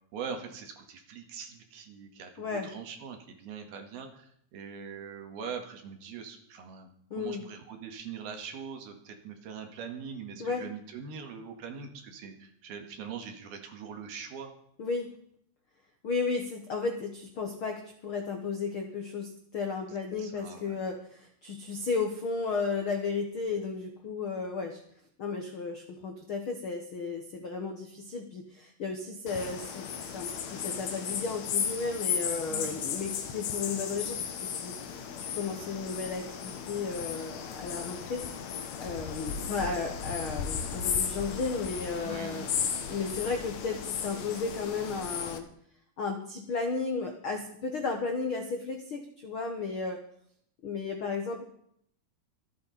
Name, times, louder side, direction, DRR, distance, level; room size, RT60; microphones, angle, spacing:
voice 1, 0.1-14.5 20.2-20.8 32.5-32.8 42.0-42.6, right 6 dB, 70° right, 5 dB, 3.6 m, -42 dB
voice 2, 2.4-2.7 7.1-7.4 10.4-10.7 14.8-15.1 16.0-24.8 25.2-29.9 30.1-45.5 46.0-50.0 50.6-51.4, left 4 dB, 85° left, 4 dB, 1.1 m, -34 dB
sound 1, 29.3-45.4, left 7 dB, 60° left, 1.9 m, -35 dB
26.0 x 8.7 x 4.2 m, 0.66 s
omnidirectional pair, 4.7 m